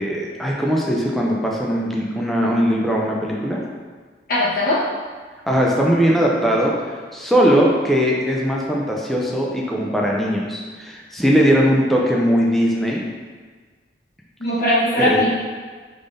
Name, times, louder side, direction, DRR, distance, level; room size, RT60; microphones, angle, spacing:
voice 1, 0.0-3.6 5.5-6.8 7.1-13.0 15.1-15.2, equal, ahead, -3 dB, 0.4 m, -19 dB
voice 2, 4.3-4.8 14.4-15.3, left 1 dB, 50° left, -7 dB, 1.0 m, -19 dB
3.5 x 3.2 x 2.6 m, 1.5 s
head